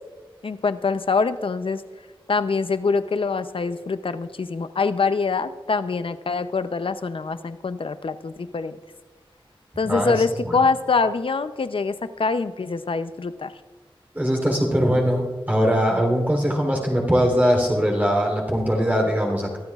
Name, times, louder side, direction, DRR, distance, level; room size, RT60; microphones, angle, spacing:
voice 1, 0.4-1.8 2.3-8.8 9.8-13.5, left 4 dB, 70° left, 12 dB, 0.6 m, -24 dB
voice 2, 9.8-10.2 10.4-10.6 14.1-19.6, equal, 20° right, -1 dB, 3.4 m, -21 dB
23.5 x 12.0 x 2.4 m, 1.3 s
wide cardioid pair, 65°, 9 cm